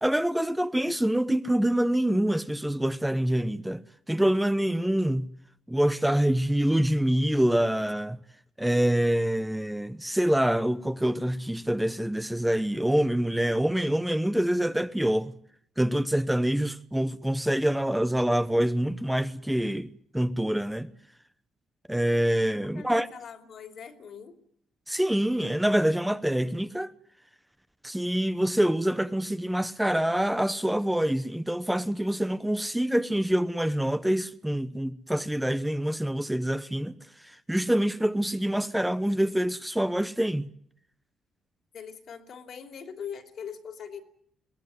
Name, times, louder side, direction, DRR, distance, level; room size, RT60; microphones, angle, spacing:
voice 1, 0.0-3.8 4.1-5.3 5.7-8.2 8.6-15.3 15.8-20.9 21.9-23.1 24.9-26.9 27.8-36.9 37.2-40.5, right 1 dB, 5° right, 0.9 m, -26 dB
voice 2, 22.6-24.3 41.7-44.0, left 7 dB, 60° left, 3.0 m, -41 dB
22.5 x 17.0 x 9.5 m
cardioid pair, 90°, 0 cm